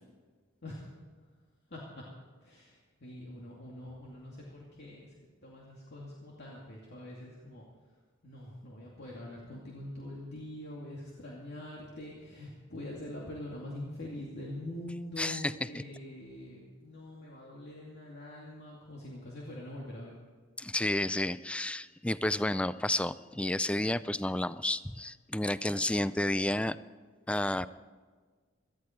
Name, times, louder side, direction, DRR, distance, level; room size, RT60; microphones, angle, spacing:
voice 1, 0.6-1.0 1.7-2.1 2.4-5.2 5.4-7.7 8.2-20.2 25.9-26.0, left 1 dB, 60° left, -4 dB, 2.5 m, -44 dB
voice 2, 15.2-15.8 20.6-26.8 27.3-27.7, left 1 dB, 5° left, 15 dB, 0.3 m, -31 dB
18.0 x 13.5 x 4.5 m, 1.5 s
head